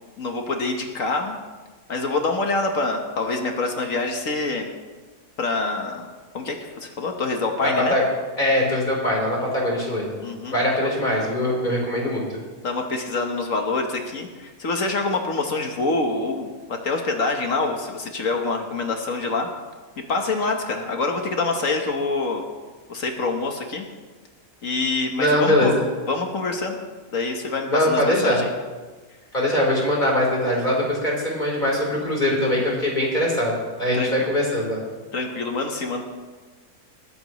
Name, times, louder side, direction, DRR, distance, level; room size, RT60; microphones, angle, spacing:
voice 1, 0.2-1.4 1.9-4.7 5.4-6.1 6.3-8.0 10.2-10.9 12.6-19.5 20.1-22.5 22.9-23.8 24.6-25.7 26.1-26.8 27.1-28.5 33.9-34.1 35.1-36.0, left 3 dB, 60° left, 4 dB, 1.6 m, -26 dB
voice 2, 7.6-8.1 8.4-10.2 10.5-12.4 25.2-25.8 27.7-28.4 29.3-34.8, left 1 dB, 30° left, -3 dB, 4.1 m, -22 dB
20.5 x 14.0 x 3.1 m, 1.3 s
omnidirectional pair, 1.6 m